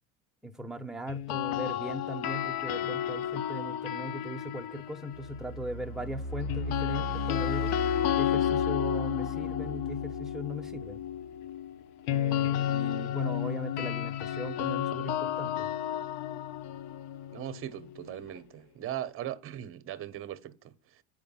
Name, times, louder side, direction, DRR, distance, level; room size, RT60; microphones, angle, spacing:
voice 1, 0.4-7.7 8.2-11.0 12.1-15.7, equal, ahead, 1.1 m, -38 dB
sound 1, 1.1-5.3 6.5-18.4, left 11 dB, 75° left, 1.1 m, -32 dB
sound 2, 5.1-11.3, equal, 30° left, 1.4 m, -37 dB
voice 2, 17.3-21.0, right 11 dB, 40° right, 1.0 m, -39 dB
8.5 x 5.0 x 5.6 m
supercardioid pair, 105°, 34 cm